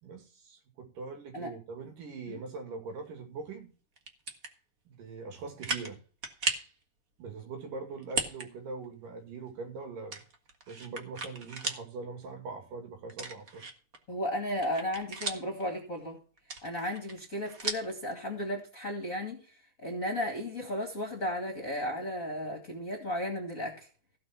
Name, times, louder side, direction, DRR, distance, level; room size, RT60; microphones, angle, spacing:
voice 1, 0.0-3.7 4.9-6.0 7.2-10.2 10.7-13.7, right 4 dB, 85° right, 4.0 m, -42 dB
sound 1, 4.0-4.5 5.1-5.2 5.6-5.9 6.2-6.7 8.0-8.5 8.8-8.9 10.1-11.8 12.2-12.3 13.1-14.0 14.4-15.6 16.4-17.9, right 3 dB, 40° right, 1.2 m, -36 dB
voice 2, 14.1-16.2 16.6-19.4 19.8-23.9, left 1 dB, 30° left, 1.9 m, -34 dB
16.0 x 5.6 x 5.8 m
omnidirectional pair, 3.7 m